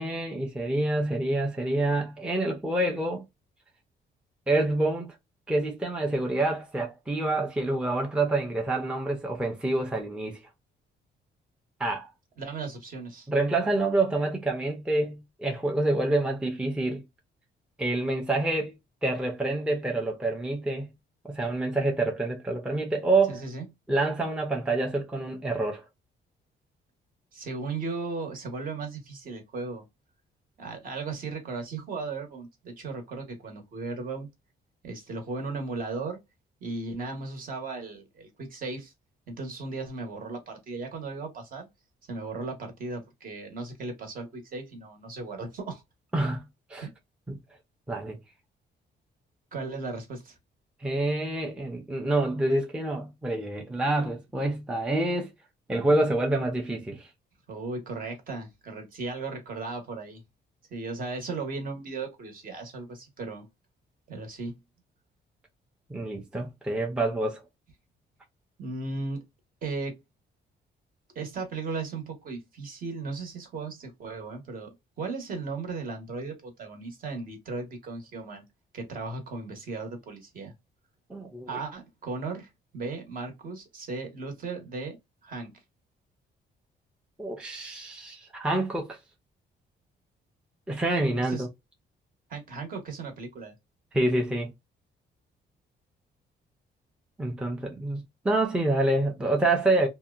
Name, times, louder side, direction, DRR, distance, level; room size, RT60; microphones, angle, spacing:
voice 1, 0.0-3.2 4.5-5.1 5.5-10.4 11.8-12.1 13.3-17.0 17.8-18.8 19.0-20.9 21.3-23.4 23.9-25.8 46.1-46.4 46.7-46.9 47.3-47.4 47.9-48.2 50.8-55.3 55.7-57.1 65.9-67.4 81.1-81.5 87.2-89.0 90.7-91.5 93.9-94.5 97.2-99.9, right 2 dB, 5° right, 0.4 m, -27 dB
voice 2, 12.4-13.3 23.3-23.6 27.3-29.8 30.6-34.3 34.8-36.2 36.6-38.9 39.3-41.7 42.1-45.8 46.8-46.9 49.5-50.4 57.5-60.2 60.7-63.5 64.1-64.5 68.6-69.2 69.6-70.0 71.1-74.7 75.0-78.4 78.7-80.5 81.5-85.0 85.2-85.5 91.1-91.5 92.3-93.5, right 3 dB, 50° right, 1.0 m, -36 dB
2.7 x 2.1 x 2.2 m
cardioid pair, 145°, 19 cm